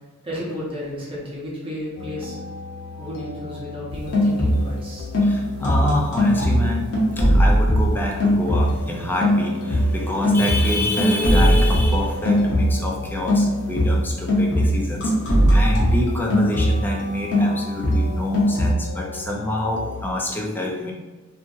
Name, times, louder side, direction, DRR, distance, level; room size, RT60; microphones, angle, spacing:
voice 1, 0.2-2.4 3.0-5.1, left 1 dB, 25° right, -6 dB, 0.8 m, -33 dB
sound 1, 2.0-20.1, left 4 dB, 90° left, 0.4 m, -36 dB
sound 2, 3.9-4.8 5.1-8.9 9.2-13.0 13.3-17.0 17.3-18.7, equal, 55° left, 0.8 m, -19 dB
voice 2, 5.2-20.9, left 1 dB, 10° left, -1 dB, 0.3 m, -27 dB
2.7 x 2.6 x 2.4 m, 1.3 s
head